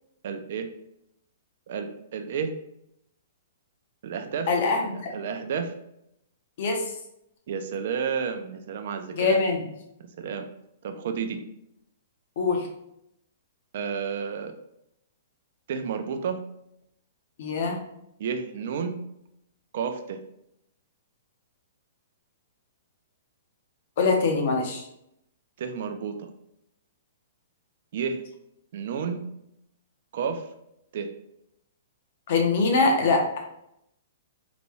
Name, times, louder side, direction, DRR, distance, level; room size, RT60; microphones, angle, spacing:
voice 1, 0.2-0.7 1.7-2.5 4.0-4.9 5.1-5.7 7.5-9.4 10.0-10.5 10.8-11.4 13.7-14.5 15.7-16.5 18.2-19.0 19.7-20.2 25.6-26.3 27.9-28.2 28.7-29.3 30.1-30.4 30.9-31.1, right 6 dB, 55° right, 7 dB, 0.4 m, -31 dB
voice 2, 4.5-5.1 6.6-6.8 9.1-9.6 12.4-12.7 17.4-17.8 24.0-24.8 32.3-33.3, left 4 dB, 50° left, 2 dB, 0.8 m, -23 dB
4.0 x 2.2 x 3.1 m, 0.78 s
hypercardioid pair, 160°, 0 cm